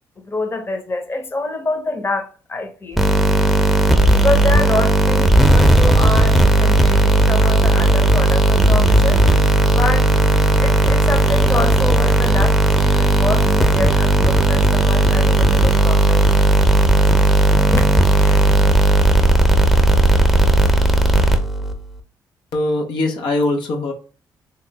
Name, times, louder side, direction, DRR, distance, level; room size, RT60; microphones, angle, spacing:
voice 1, 0.3-3.0 4.1-9.4 9.7-10.1 10.6-16.2 17.7-18.7, left 2 dB, 30° left, 0.8 m, -26 dB
sound 1, 3.0-21.7, right 1 dB, ahead, 0.6 m, -14 dB
voice 2, 22.5-23.9, left 2 dB, 80° left, 0.6 m, -21 dB
2.9 x 2.0 x 4.0 m
cardioid pair, 65°, 8 cm